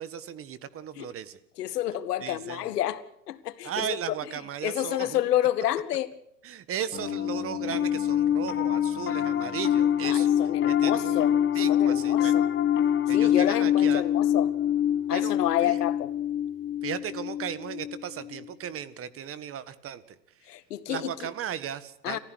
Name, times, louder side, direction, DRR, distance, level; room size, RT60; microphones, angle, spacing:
voice 1, 0.0-1.4 2.2-2.7 3.6-5.2 6.4-10.3 10.7-11.3 11.5-12.4 13.1-14.1 15.1-15.3 15.6-15.8 16.8-20.2 20.9-22.2, right 9 dB, 25° right, 1.6 m, -36 dB
voice 2, 1.6-3.0 3.3-4.0 4.6-6.1 10.1-11.4 11.7-12.5 13.1-14.5 15.1-16.1 20.5-21.1 22.0-22.2, left 13 dB, 70° left, 2.1 m, -29 dB
Piano, 6.9-18.4, left 10 dB, 25° left, 1.5 m, -25 dB
30.0 x 15.0 x 6.3 m
hypercardioid pair, 115°, 48 cm